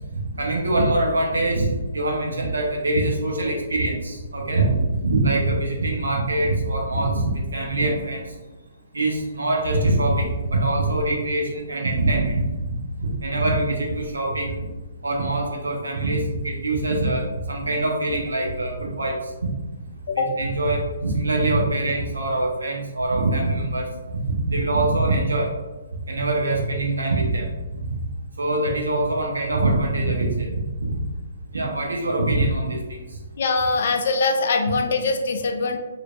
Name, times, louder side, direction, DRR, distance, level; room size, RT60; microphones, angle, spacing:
voice 1, 0.1-8.3 8.9-14.6 15.0-19.5 20.1-23.9 24.3-25.5 26.1-27.5 27.8-28.1 28.4-30.9 31.5-33.0, right 2 dB, 65° right, -1 dB, 0.7 m, -23 dB
voice 2, 33.4-35.8, left 3 dB, 50° left, 5 dB, 0.3 m, -22 dB
3.0 x 2.4 x 2.2 m, 1.1 s
figure-of-eight pair, 130°, 0 cm